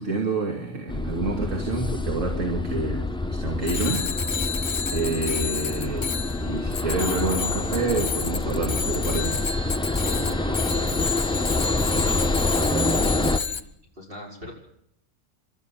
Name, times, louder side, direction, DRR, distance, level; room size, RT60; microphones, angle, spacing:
voice 1, 0.0-4.1 4.3-6.1 6.4-9.4, right 3 dB, 75° right, 2 dB, 3.0 m, -28 dB
sound 1, 0.9-13.4, left 2 dB, 5° left, 0.5 m, -27 dB
Bicycle bell, 3.6-13.6, left 6 dB, 55° left, 1.4 m, -30 dB
voice 2, 9.9-13.6 13.9-14.5, left 1 dB, 45° right, -1 dB, 5.7 m, -39 dB
30.0 x 13.0 x 7.4 m, 0.76 s
omnidirectional pair, 1.4 m